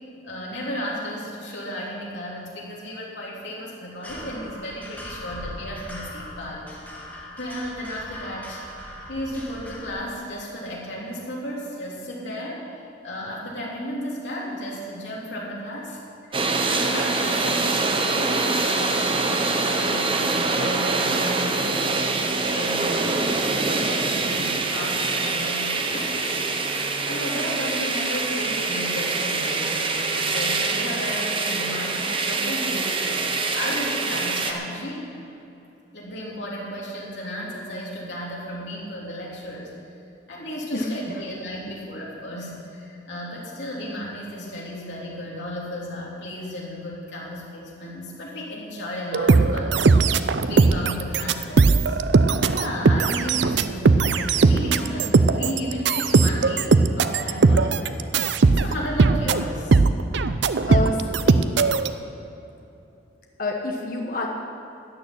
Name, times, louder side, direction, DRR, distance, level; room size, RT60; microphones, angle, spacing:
voice 1, 0.2-6.8 7.4-8.6 9.1-16.0 16.3-23.1 23.5-26.5 27.1-33.2 33.5-35.1 35.9-39.7 40.3-50.0 50.5-52.0 52.5-56.7 57.0-58.0 58.5-59.8, equal, 70° left, -4 dB, 3.4 m, -34 dB
sound 1, 4.0-9.9, equal, 10° left, 1.9 m, -39 dB
sound 2, 16.3-34.5, right 3 dB, 30° right, 0.9 m, -25 dB
voice 2, 40.7-41.2 60.7-61.4 63.4-64.3, left 2 dB, 45° left, 0 dB, 1.2 m, -28 dB
sound 3, 49.1-61.9, right 4 dB, 70° right, 0.5 m, -19 dB
13.5 x 6.7 x 9.9 m, 2.9 s
head